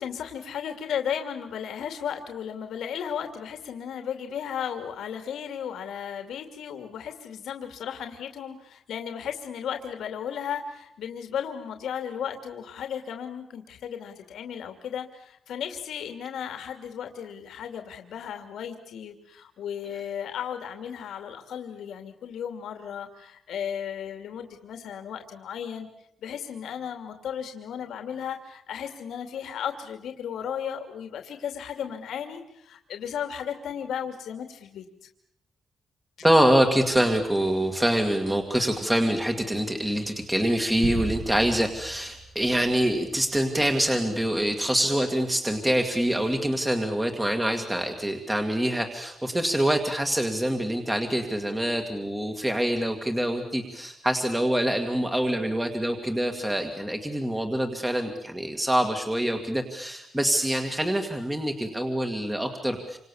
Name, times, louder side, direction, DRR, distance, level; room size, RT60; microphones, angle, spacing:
voice 1, 0.0-25.9 26.2-34.8, left 8 dB, 80° left, 6 dB, 2.7 m, -35 dB
voice 2, 36.2-63.0, right 1 dB, 10° right, 4 dB, 2.2 m, -25 dB
sound 1, 40.8-43.3, right 4 dB, 40° right, 1.7 m, -36 dB
28.5 x 26.5 x 7.3 m, 0.76 s
wide cardioid pair, 170°, 0 cm